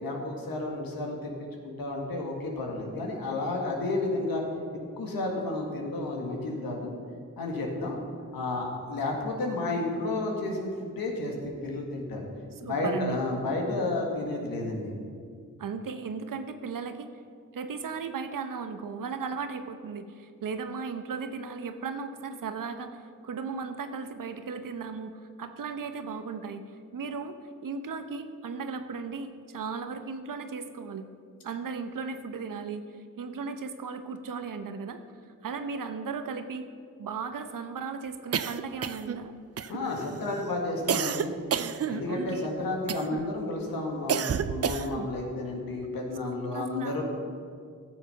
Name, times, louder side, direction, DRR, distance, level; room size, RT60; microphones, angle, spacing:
voice 1, 0.0-1.3 1.6-4.4 5.0-6.9 7.4-8.0 8.3-12.2 12.6-14.9 39.7-41.3 41.9-47.0, left 2 dB, 75° left, 0 dB, 1.8 m, -31 dB
voice 2, 12.6-13.2 15.6-17.1 17.5-26.6 26.9-27.4 27.6-31.1 31.4-32.8 33.2-35.0 35.4-36.7 37.0-39.3 42.1-42.5 46.2-47.0, right 5 dB, 65° right, 9 dB, 0.9 m, -36 dB
sound 1, 38.3-39.2 39.6-40.1 40.9-42.4 42.9-43.3 44.1-45.1, right 8 dB, 45° right, 0.5 m, -30 dB
12.5 x 6.7 x 5.6 m, 2.2 s
supercardioid pair, 40°, 35 cm